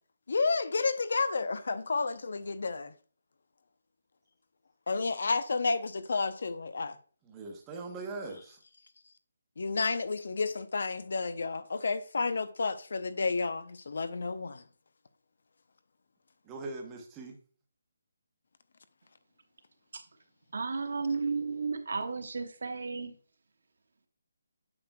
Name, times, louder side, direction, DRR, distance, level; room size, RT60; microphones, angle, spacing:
voice 1, 0.3-2.9 4.9-7.0 9.6-14.6, left 4 dB, 55° left, 0.6 m, -31 dB
voice 2, 7.2-8.6 16.4-17.4, right 3 dB, 10° right, 0.9 m, -41 dB
voice 3, 20.5-23.1, right 4 dB, 60° right, 1.1 m, -33 dB
8.8 x 5.9 x 2.3 m
hypercardioid pair, 175°, 0 cm